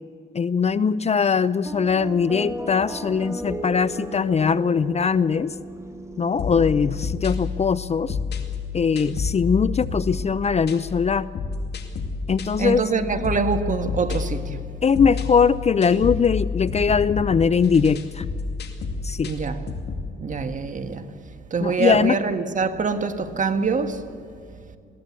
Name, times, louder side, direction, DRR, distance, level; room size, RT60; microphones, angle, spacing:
voice 1, 0.3-5.5 6.2-8.2 8.7-11.3 12.3-12.8 14.8-18.2 19.0-19.3 21.6-22.2, left 6 dB, 35° left, 0.5 m, -21 dB
sound 1, 1.6-7.0, right 1 dB, 15° right, 2.0 m, -35 dB
sound 2, 6.4-20.1, left 4 dB, 55° left, 2.5 m, -30 dB
voice 2, 12.6-14.7 19.2-19.7 20.2-21.1 21.5-24.2, right 4 dB, 40° right, 1.7 m, -25 dB
21.0 x 16.5 x 8.3 m
cardioid pair, 90°, 20 cm